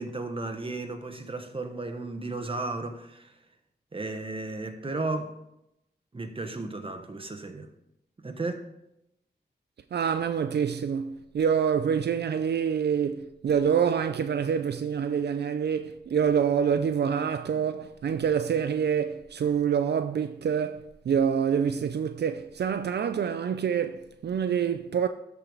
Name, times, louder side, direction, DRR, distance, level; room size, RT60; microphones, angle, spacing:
voice 1, 0.0-3.4 3.9-5.3 6.1-7.7 8.2-8.6, right 2 dB, 30° right, 1.1 m, -34 dB
voice 2, 9.9-25.1, right 7 dB, 75° right, 0.4 m, -26 dB
12.5 x 4.8 x 3.9 m
wide cardioid pair, 75°, 17 cm